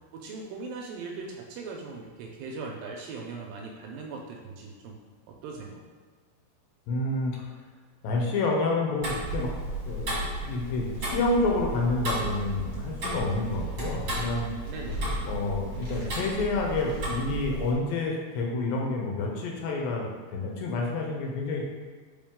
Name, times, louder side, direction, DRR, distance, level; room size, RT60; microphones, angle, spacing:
voice 1, 0.1-5.0 5.3-5.8 14.7-15.1, right 4 dB, 80° right, 0 dB, 2.2 m, -39 dB
voice 2, 6.9-7.5 8.0-9.5 9.8-10.1 10.4-14.5 15.3-21.6, left 2 dB, 75° left, 0 dB, 2.4 m, -29 dB
Tick-tock, 9.0-17.7, right 2 dB, 40° right, 1.4 m, -34 dB
sound 1, 12.5-12.9 13.3-15.3 15.7-16.4 16.7-17.3, left 2 dB, 55° left, 1.0 m, -41 dB
5.3 x 5.1 x 3.6 m, 1.5 s
omnidirectional pair, 4.4 m